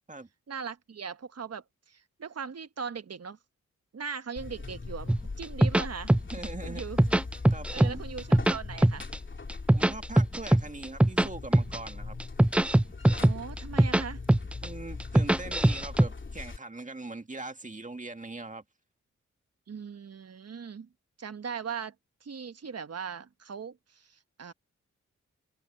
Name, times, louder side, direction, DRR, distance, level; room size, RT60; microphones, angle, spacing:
voice 1, 0.5-3.4 3.9-6.2 6.6-7.0 7.7-9.0 13.2-14.2 19.7-20.9 21.2-21.9 22.2-24.5, right 6 dB, 55° right, 1.3 m, -39 dB
Buzz, 4.4-16.6, left 3 dB, 40° left, 2.8 m, -41 dB
sound 1, 5.1-6.5 6.8-9.2 9.5-11.3 11.5-11.9 12.2-14.0 14.3-14.7 15.0-16.1, right 1 dB, 5° right, 0.4 m, -21 dB
voice 2, 6.3-6.8 7.5-8.0 9.7-12.2 14.6-18.6, right 2 dB, 25° right, 2.0 m, -41 dB
cardioid pair, 50°, 30 cm